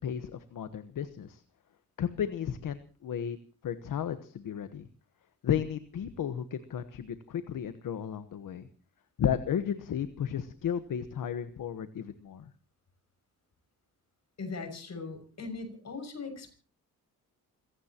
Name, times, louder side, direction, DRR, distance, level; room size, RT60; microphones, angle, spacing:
voice 1, 0.0-1.4 2.0-3.4 3.6-4.9 5.4-8.6 9.2-12.5, left 8 dB, 65° left, 11 dB, 1.3 m, -33 dB
voice 2, 14.4-16.5, left 4 dB, 50° left, 6 dB, 6.5 m, -39 dB
27.5 x 16.5 x 3.0 m, 0.39 s
cardioid pair, 95°, 35 cm